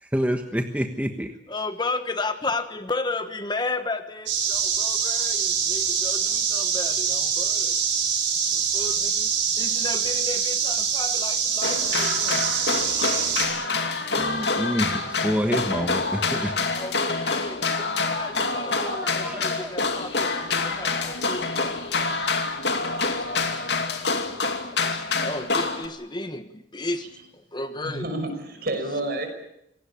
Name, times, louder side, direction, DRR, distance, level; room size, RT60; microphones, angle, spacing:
voice 1, 0.0-1.3 14.2-16.5 18.6-19.7, equal, 10° right, 5 dB, 1.3 m, -28 dB
voice 2, 1.5-7.8 8.5-9.3 9.6-12.5 16.7-21.8 22.9-23.3 24.9-27.1 27.3-28.1, left 3 dB, 25° left, 10 dB, 1.2 m, -33 dB
sound 1, 4.3-13.4, right 7 dB, 85° right, 6.4 m, -24 dB
sound 2, 11.6-25.9, left 3 dB, 65° left, 2.6 m, -26 dB
voice 3, 27.8-29.3, right 2 dB, 55° right, 6 dB, 5.9 m, -29 dB
26.0 x 18.5 x 8.6 m, 0.81 s
head